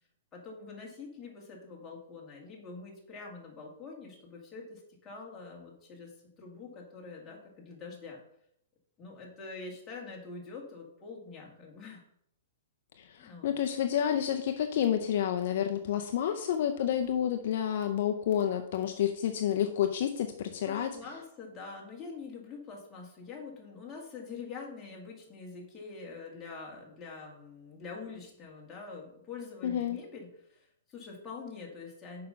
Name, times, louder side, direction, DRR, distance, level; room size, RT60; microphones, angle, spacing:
voice 1, 0.3-6.1 6.4-8.2 9.0-12.0 13.2-13.5 20.6-32.3, left 4 dB, 15° left, -3 dB, 2.1 m, -45 dB
voice 2, 13.0-20.9 29.6-30.0, left 9 dB, 55° left, 5 dB, 0.6 m, -29 dB
6.7 x 5.2 x 5.6 m, 0.72 s
hypercardioid pair, 160°, 0 cm